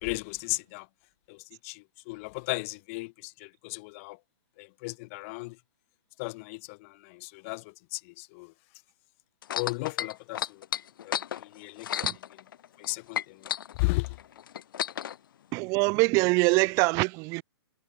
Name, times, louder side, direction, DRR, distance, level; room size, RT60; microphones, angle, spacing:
voice 1, 0.0-0.9 1.3-4.2 4.6-5.6 6.2-8.5 9.5-10.6 11.0-12.4 12.8-13.5 13.8-14.2, left 27 dB, 35° left, 4.4 m, -35 dB
sound 1, 9.4-12.9 13.1-15.2 15.9-16.0, left 10 dB, 60° left, 2.5 m, -32 dB
voice 2, 15.5-17.4, right 28 dB, 25° right, 0.9 m, -24 dB
hypercardioid pair, 155°, 13 cm